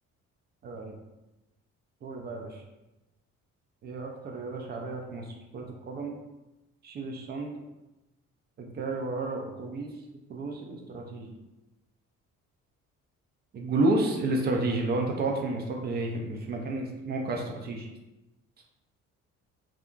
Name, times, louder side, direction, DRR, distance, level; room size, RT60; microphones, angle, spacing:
voice 1, 0.6-0.9 2.0-2.6 3.8-6.2 6.8-7.5 8.6-9.9 10.3-11.3 13.5-17.9, right 2 dB, 25° right, 1 dB, 0.3 m, -31 dB
2.7 x 2.5 x 2.3 m, 1.0 s
figure-of-eight pair, 45°, 41 cm